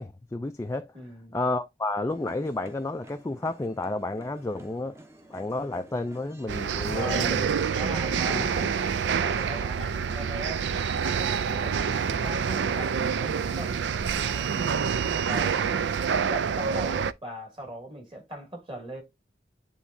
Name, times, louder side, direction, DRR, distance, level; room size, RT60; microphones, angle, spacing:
voice 1, 0.0-0.9 1.3-5.0 5.3-7.6 8.3-8.5, left 2 dB, 15° left, 0.3 m, -31 dB
voice 2, 0.9-1.4 6.9-7.3 7.7-8.7 9.0-10.7 11.5-13.8 14.1-14.8 15.2-15.7 16.3-19.0, equal, 30° right, 2.3 m, -39 dB
sound 1, 2.1-9.7, right 1 dB, 15° right, 0.8 m, -51 dB
sound 2, 6.5-17.1, right 6 dB, 85° right, 0.4 m, -27 dB
10.0 x 3.5 x 2.7 m
head